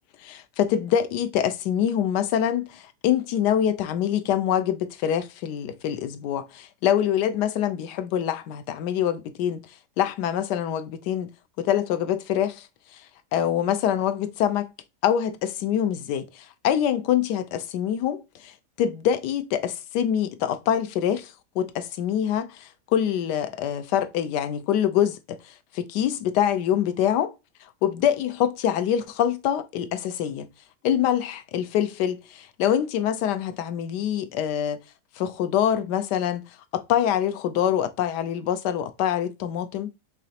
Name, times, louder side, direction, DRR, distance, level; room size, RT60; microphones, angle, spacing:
voice 1, 0.2-9.7 10.0-11.3 11.6-12.7 12.9-13.0 13.3-14.7 15.0-27.3 27.6-30.5 30.8-34.8 35.2-39.9, left 10 dB, 85° left, 1.2 m, -25 dB
5.0 x 3.2 x 2.8 m
omnidirectional pair, 1.7 m